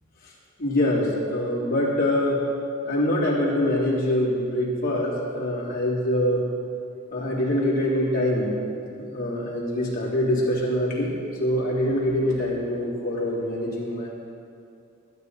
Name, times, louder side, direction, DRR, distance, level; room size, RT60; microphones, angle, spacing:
voice 1, 0.6-2.4 2.8-6.4 7.1-8.6 9.1-11.1 11.4-14.1, left 1 dB, 45° left, -6 dB, 3.3 m, -24 dB
21.5 x 9.4 x 4.0 m, 2.5 s
head